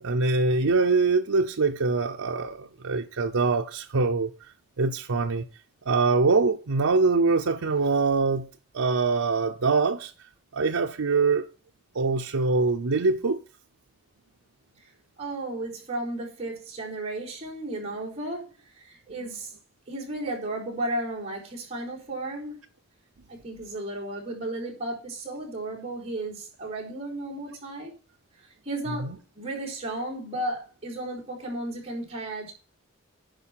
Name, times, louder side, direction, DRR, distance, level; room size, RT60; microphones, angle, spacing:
voice 1, 0.0-4.3 4.8-5.4 5.8-8.4 8.7-10.1 10.5-11.5 11.9-13.4 29.0-29.2, right 4 dB, 80° right, 0.7 m, -23 dB
voice 2, 15.2-18.5 18.8-19.5 19.9-22.6 23.4-27.9 28.7-32.5, right 1 dB, 30° right, 4.1 m, -34 dB
10.5 x 5.2 x 5.8 m
head